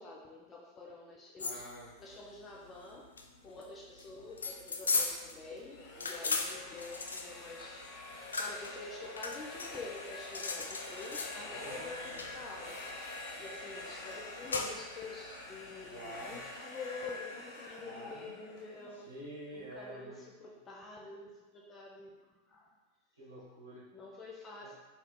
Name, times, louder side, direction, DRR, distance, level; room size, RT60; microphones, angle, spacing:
voice 1, 0.0-1.6 2.0-3.1 3.4-19.1 19.5-22.1 22.5-22.7 23.9-24.7, left 3 dB, 25° left, -2 dB, 0.6 m, -47 dB
sound 1, 1.4-16.5, left 4 dB, 85° left, 0.3 m, -39 dB
voice 2, 1.4-1.9 4.1-4.3 11.3-12.2 15.9-16.4 17.8-18.5 18.7-20.2 23.2-23.8 24.6-24.7, equal, 85° right, -7 dB, 1.0 m, -48 dB
sound 2, 5.6-19.4, left 2 dB, 55° left, 1.0 m, -46 dB
3.8 x 2.6 x 3.4 m, 1.2 s
hypercardioid pair, 90°, 0 cm